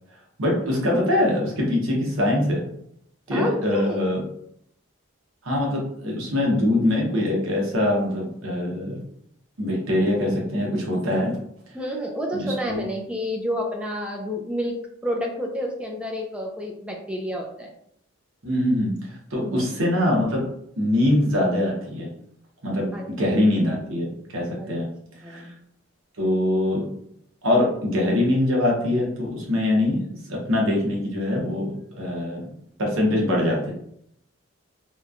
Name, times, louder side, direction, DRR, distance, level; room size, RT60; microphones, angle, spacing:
voice 1, 0.4-2.7 3.3-4.2 5.4-9.0 9.6-11.3 12.3-12.8 18.4-18.9 19.3-20.4 20.8-22.1 22.6-24.9 25.2-25.5 26.2-26.9 27.4-32.4 32.8-33.7, left 1 dB, 75° right, -2 dB, 0.9 m, -23 dB
voice 2, 3.3-4.0 11.7-14.8 15.0-17.7 19.3-19.7 22.9-23.4 24.6-24.7 25.2-25.5, equal, 5° right, 0 dB, 0.3 m, -29 dB
2.9 x 2.2 x 2.4 m, 0.72 s
head